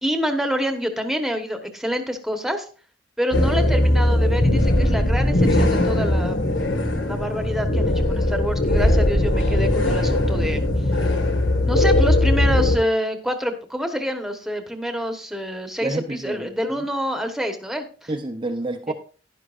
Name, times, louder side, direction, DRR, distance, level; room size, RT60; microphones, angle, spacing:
voice 1, 0.0-2.7 3.2-6.4 7.1-10.7 11.6-18.1 18.9-19.0, equal, ahead, 1.1 m, -27 dB
sound 1, 3.3-12.8, left 1 dB, 70° left, 1.6 m, -19 dB
voice 2, 15.8-16.5 18.1-18.9, right 2 dB, 25° right, 0.7 m, -28 dB
11.0 x 11.0 x 2.5 m
head